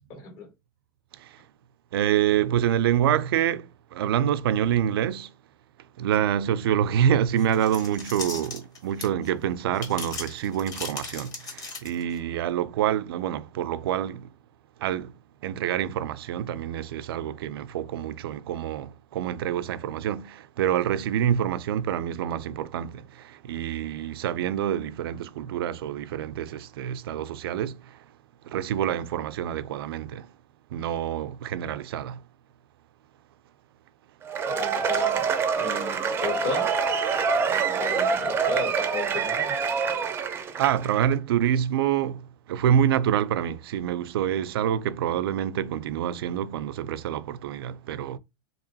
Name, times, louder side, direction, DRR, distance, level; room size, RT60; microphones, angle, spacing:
voice 1, 0.1-0.5 34.4-36.7 37.5-39.5, left 4 dB, 50° left, 1.8 m, -35 dB
voice 2, 1.9-5.3 6.0-14.3 14.8-15.2 15.4-28.0 28.4-30.3 30.7-32.2 40.6-48.2, right 10 dB, 80° right, 0.4 m, -27 dB
sound 1, 7.4-9.3 9.7-12.2, left 4 dB, 30° left, 1.2 m, -37 dB
Cheering / Applause / Crowd, 34.2-41.1, right 6 dB, 20° right, 0.5 m, -26 dB
2.9 x 2.9 x 4.0 m
supercardioid pair, 140°, 12 cm